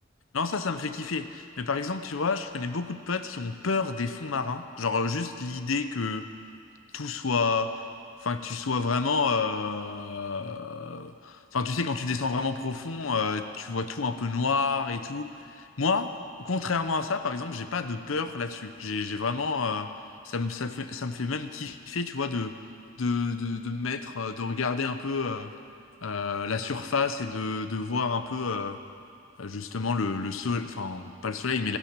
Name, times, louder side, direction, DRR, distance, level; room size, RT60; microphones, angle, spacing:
voice 1, 0.3-6.3 6.9-7.7 8.2-19.9 20.2-22.5 23.0-25.5 26.0-28.8 29.4-31.8, left 4 dB, 80° left, 10 dB, 0.8 m, -29 dB
15.0 x 10.5 x 7.4 m, 2.4 s
head